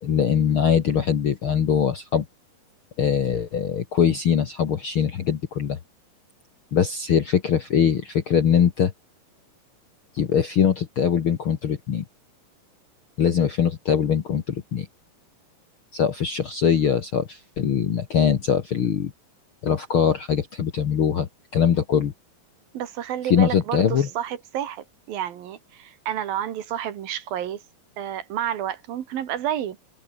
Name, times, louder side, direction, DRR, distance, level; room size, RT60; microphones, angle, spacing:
voice 1, 0.0-2.2 3.0-5.8 6.7-8.9 10.1-12.0 13.2-14.9 15.9-19.1 19.6-22.1 23.2-24.1, left 8 dB, 55° left, 1.5 m, -22 dB
voice 2, 22.7-27.6 28.0-29.8, right 10 dB, 75° right, 3.6 m, -30 dB
omnidirectional pair, 4.2 m